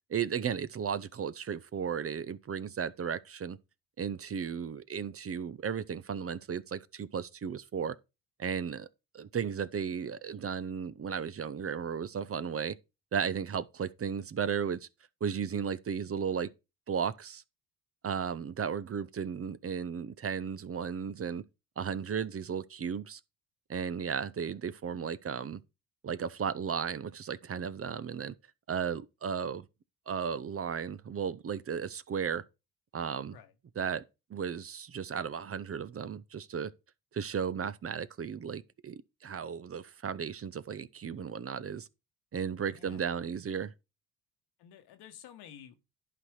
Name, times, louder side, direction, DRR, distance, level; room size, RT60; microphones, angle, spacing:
voice 1, 0.1-3.6 4.0-7.9 8.4-8.9 9.1-12.8 13.1-14.9 15.2-16.5 16.9-17.4 18.0-21.4 21.8-23.2 23.7-25.6 26.0-28.3 28.7-29.7 30.1-32.4 32.9-33.3 33.8-34.0 34.3-36.7 37.1-41.9 42.3-43.7, right 7 dB, 35° right, 0.7 m, -35 dB
voice 2, 44.6-45.7, left 9 dB, 75° left, 1.4 m, -51 dB
11.0 x 4.2 x 4.8 m
hypercardioid pair, 55°, 39 cm